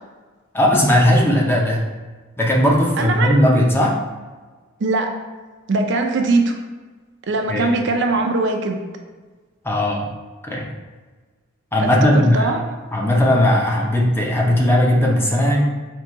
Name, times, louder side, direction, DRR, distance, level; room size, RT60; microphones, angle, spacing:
voice 1, 0.5-1.8 2.4-3.9 7.5-7.7 9.6-10.1 10.4-10.7 11.7-12.5 12.9-15.6, left 1 dB, 10° left, -2 dB, 0.6 m, -17 dB
voice 2, 3.0-3.4 4.8-5.1 5.7-6.6 7.3-8.8 11.8-11.9 12.1-12.6, right 3 dB, 60° right, 3 dB, 0.5 m, -20 dB
4.7 x 2.7 x 3.8 m, 1.3 s
head